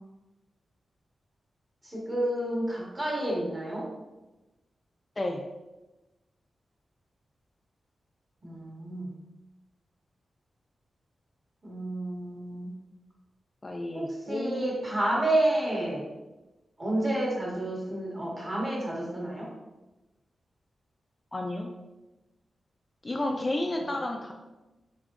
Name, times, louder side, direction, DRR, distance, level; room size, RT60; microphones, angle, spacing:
voice 1, 1.8-3.8 8.4-9.1 11.6-12.7 13.9-16.0 16.8-19.5, right 1 dB, 25° right, -4 dB, 1.5 m, -30 dB
voice 2, 13.6-14.7 21.3-21.7 23.0-24.3, left 1 dB, 25° left, 2 dB, 0.4 m, -31 dB
4.0 x 3.6 x 3.0 m, 1.1 s
wide cardioid pair, 100°, 0 cm